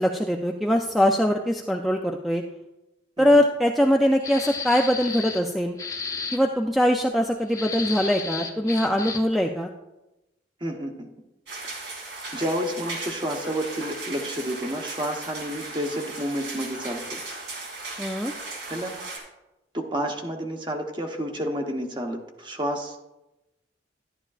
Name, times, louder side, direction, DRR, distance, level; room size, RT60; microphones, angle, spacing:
voice 1, 0.0-2.4 3.2-5.8 6.3-9.7 18.0-18.3, equal, ahead, 2 dB, 0.4 m, -22 dB
sound 1, 4.2-5.5 5.8-6.4 7.5-9.4, left 5 dB, 20° left, 0.7 m, -33 dB
voice 2, 10.6-11.1 11.6-11.7 12.3-17.2 18.7-19.0 19.7-23.0, equal, 25° right, 3 dB, 1.0 m, -30 dB
sound 2, 11.5-19.2, right 3 dB, 85° right, 2.3 m, -37 dB
11.0 x 11.0 x 2.4 m, 0.97 s
head